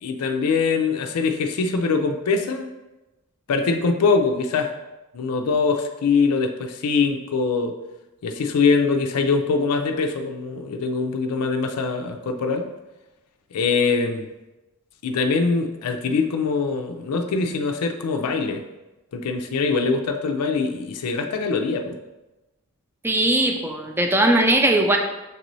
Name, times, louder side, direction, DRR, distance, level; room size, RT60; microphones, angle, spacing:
voice 1, 0.0-2.7 3.5-4.7 5.1-7.7 8.2-12.7 13.5-14.3 15.0-18.6 19.1-22.0, left 4 dB, 85° left, 5 dB, 0.4 m, -23 dB
voice 2, 23.0-25.0, right 1 dB, 10° right, 4 dB, 0.4 m, -19 dB
6.6 x 2.6 x 3.0 m, 1.0 s
head